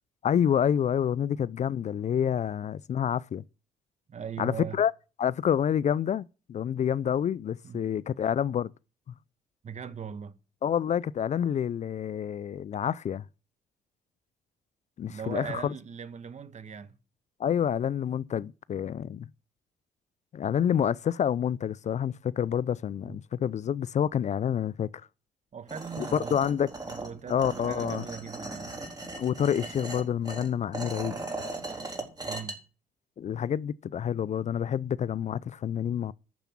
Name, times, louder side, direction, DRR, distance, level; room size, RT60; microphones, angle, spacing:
voice 1, 0.2-3.4 4.4-4.9 5.2-8.7 10.6-13.2 15.0-15.7 17.4-19.3 20.3-24.9 26.0-26.7 27.3-28.0 29.2-31.1 33.2-36.1, left 9 dB, 45° left, 0.5 m, -28 dB
voice 2, 4.1-4.8 7.6-7.9 9.6-10.3 15.1-17.0 23.0-23.2 25.5-26.4 26.9-28.7 32.2-32.6, right 7 dB, 45° right, 1.3 m, -40 dB
sound 1, 25.7-32.5, right 2 dB, 25° right, 4.1 m, -38 dB
11.5 x 7.0 x 6.0 m
hypercardioid pair, 60°, 17 cm